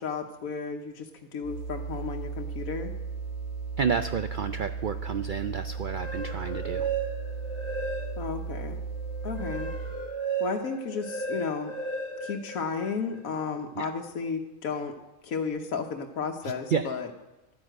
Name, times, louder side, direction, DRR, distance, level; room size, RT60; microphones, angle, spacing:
voice 1, 0.0-2.9 8.2-8.8 9.2-9.7 10.4-11.7 12.2-14.9 15.2-17.1, left 5 dB, 80° left, 3 dB, 1.4 m, -33 dB
sound 1, 1.4-10.1, right 5 dB, 45° left, 2.2 m, -36 dB
voice 2, 3.8-6.9 13.7-13.9 16.4-16.9, right 6 dB, 70° right, 10 dB, 0.4 m, -30 dB
sound 2, 5.7-8.4 8.9-13.2, right 4 dB, 20° right, 6.4 m, -35 dB
12.0 x 9.6 x 7.7 m, 0.98 s
omnidirectional pair, 1.4 m